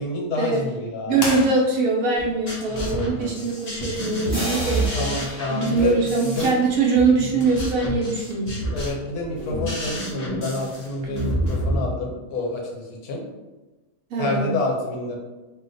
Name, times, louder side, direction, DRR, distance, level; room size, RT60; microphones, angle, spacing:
voice 1, 0.0-1.2 2.7-3.5 4.9-6.5 7.3-7.5 8.7-13.2 14.2-15.2, left 2 dB, 80° left, -1 dB, 1.2 m, -28 dB
sound 1, 1.1-2.2, left 2 dB, 65° left, 1.0 m, -31 dB
voice 2, 1.1-8.6 11.0-11.3 14.1-14.6, right 3 dB, 70° right, 0 dB, 1.0 m, -23 dB
sound 2, 2.2-11.8, right 1 dB, 45° left, 0.5 m, -29 dB
sound 3, 4.3-7.1, equal, 15° right, 0.8 m, -33 dB
2.8 x 2.1 x 3.9 m, 1.1 s
omnidirectional pair, 1.6 m